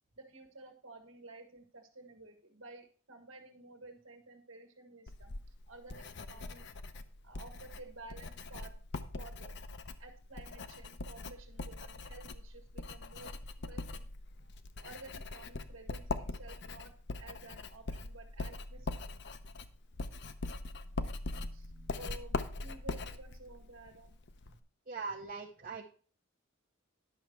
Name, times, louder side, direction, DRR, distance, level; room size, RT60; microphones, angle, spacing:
voice 1, 0.1-5.4 5.7-6.7 7.2-9.6 10.0-13.3 13.7-14.1 14.8-19.1 20.5-24.1, right 2 dB, 80° right, 5 dB, 1.4 m, -53 dB
Writing, 5.1-24.6, left 3 dB, 60° left, 0.7 m, -42 dB
voice 2, 24.9-25.9, right 4 dB, 45° right, 1 dB, 0.8 m, -41 dB
10.5 x 6.4 x 4.5 m, 0.42 s
head